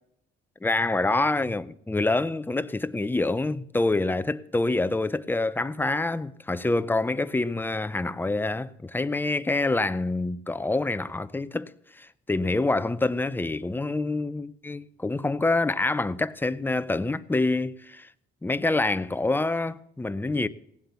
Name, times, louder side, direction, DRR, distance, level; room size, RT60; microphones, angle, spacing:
voice 1, 0.6-18.1 18.4-20.5, left 2 dB, 10° left, 0.6 m, -26 dB
17.5 x 7.9 x 7.0 m
cardioid pair, 90°, 20 cm